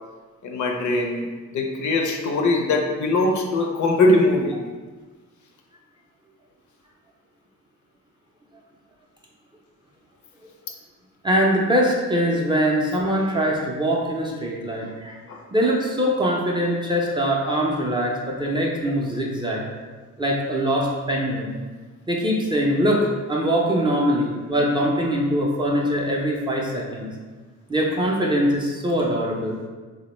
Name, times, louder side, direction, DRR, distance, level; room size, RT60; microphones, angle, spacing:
voice 1, 0.4-1.3 1.5-4.6 15.3-15.4, left 2 dB, 60° left, 2 dB, 0.5 m, -21 dB
voice 2, 11.2-15.2 15.5-19.6 20.2-21.6 22.1-27.1 27.7-29.6, equal, 15° right, -3 dB, 0.4 m, -22 dB
3.4 x 2.1 x 3.0 m, 1.4 s
cardioid pair, 105°, 33 cm